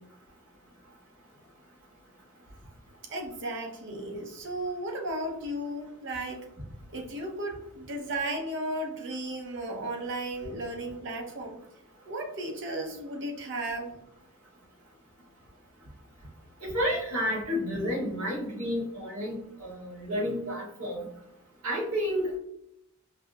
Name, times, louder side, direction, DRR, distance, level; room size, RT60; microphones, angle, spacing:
voice 1, 3.1-6.5 6.9-11.6 12.1-13.9, right 1 dB, 55° right, 2 dB, 0.6 m, -35 dB
voice 2, 16.6-21.0 21.6-22.3, equal, 80° right, -3 dB, 1.4 m, -30 dB
5.4 x 2.2 x 2.2 m, 0.79 s
head